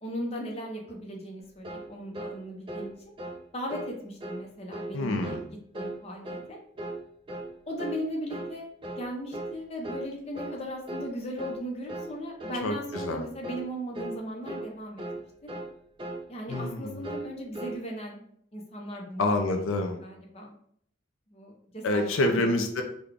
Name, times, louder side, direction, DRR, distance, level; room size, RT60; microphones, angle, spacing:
voice 1, 0.0-2.9 3.5-5.4 5.7-6.6 7.7-8.7 9.0-15.0 15.4-15.5 16.3-18.2 18.5-19.3 20.0-20.5 21.3-22.6, equal, 30° left, 0 dB, 0.6 m, -37 dB
sound 1, 1.6-1.9 2.1-2.4 2.7-2.9 3.2-3.4 3.7-3.9 4.2-4.4 4.7-4.9 5.2-5.5 5.7-6.0 6.2-6.5 6.8-7.0 7.3-7.5 7.8-8.0 8.3-8.5 8.8-9.1 9.3-9.5 9.8-10.1 10.3-10.6 10.9-11.1 11.4-11.6 11.9-12.1 12.4-12.6 12.9-13.1 13.4-13.7 13.9-14.2 14.5-14.7 15.0-15.2 15.5-15.7 16.0-16.2 16.5-16.7 17.0-17.8, right 1 dB, 25° right, 0.5 m, -37 dB
voice 2, 4.9-5.4 12.6-13.3 16.5-17.1 19.2-20.0 21.8-22.8, left 2 dB, 90° left, 4 dB, 0.5 m, -27 dB
3.8 x 2.2 x 3.4 m, 0.65 s
head